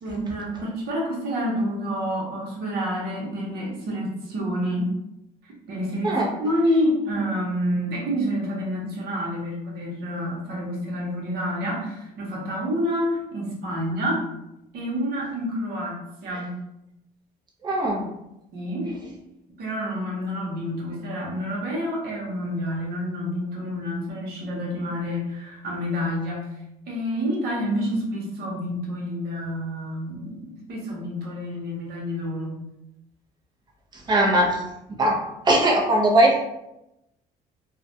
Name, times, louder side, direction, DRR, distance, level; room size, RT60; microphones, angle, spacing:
voice 1, 0.0-4.9 5.4-6.1 6.4-14.2 14.7-16.5 18.5-19.0 19.6-26.5 26.9-30.4 30.7-32.6, equal, 70° right, -3 dB, 0.9 m, -28 dB
voice 2, 17.6-18.0 33.9-34.6 34.9-35.2 35.4-36.4, right 1 dB, 25° right, -2 dB, 0.6 m, -20 dB
2.4 x 2.1 x 2.7 m, 0.88 s
cardioid pair, 110°, 17 cm